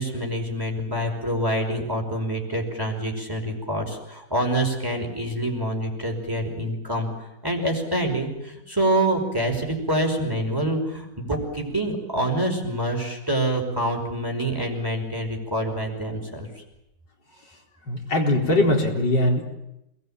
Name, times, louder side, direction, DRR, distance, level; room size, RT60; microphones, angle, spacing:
voice 1, 0.0-7.1 7.4-16.5, right 1 dB, 10° right, 2 dB, 5.3 m, -26 dB
voice 2, 17.9-19.4, left 1 dB, 75° left, 0 dB, 4.8 m, -21 dB
27.5 x 20.0 x 9.0 m, 0.86 s
omnidirectional pair, 1.9 m